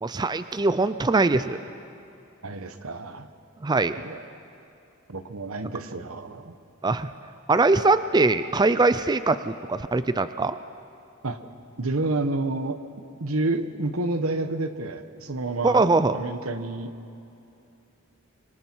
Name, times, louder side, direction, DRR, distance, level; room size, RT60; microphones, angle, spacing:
voice 1, 0.0-1.6 3.6-4.0 6.8-7.1 7.5-10.5 15.6-16.2, right 3 dB, 20° right, 12 dB, 0.4 m, -22 dB
voice 2, 2.4-3.3 4.0-4.2 5.1-6.5 11.2-11.4 11.8-12.8 13.2-15.9 16.1-16.9, right 2 dB, 90° right, 10 dB, 1.1 m, -29 dB
25.5 x 25.0 x 4.6 m, 2.6 s
head